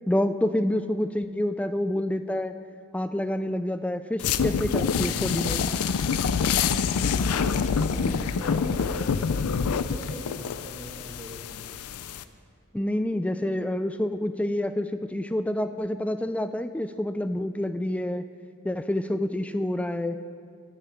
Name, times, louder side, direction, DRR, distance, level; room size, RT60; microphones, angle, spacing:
voice 1, 0.1-2.5 2.9-5.6 12.7-18.3 18.6-20.2, left 1 dB, 5° left, 9 dB, 0.3 m, -28 dB
sound 1, 4.2-12.2, left 6 dB, 80° left, 0.5 m, -26 dB
voice 2, 7.2-11.7, equal, 30° right, -2 dB, 2.1 m, -42 dB
13.0 x 10.5 x 5.0 m, 2.2 s
head